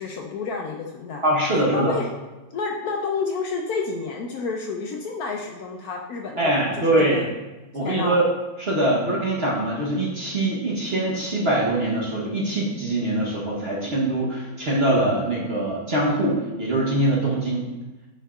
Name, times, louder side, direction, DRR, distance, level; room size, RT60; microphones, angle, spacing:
voice 1, 0.0-1.2 1.7-2.1 2.5-7.3 7.8-8.2, left 4 dB, 70° left, 1 dB, 0.9 m, -30 dB
voice 2, 1.2-1.9 6.4-7.3 7.7-8.3 8.6-17.7, right 1 dB, 45° right, -4 dB, 1.0 m, -23 dB
9.0 x 4.5 x 2.3 m, 1.1 s
omnidirectional pair, 1.9 m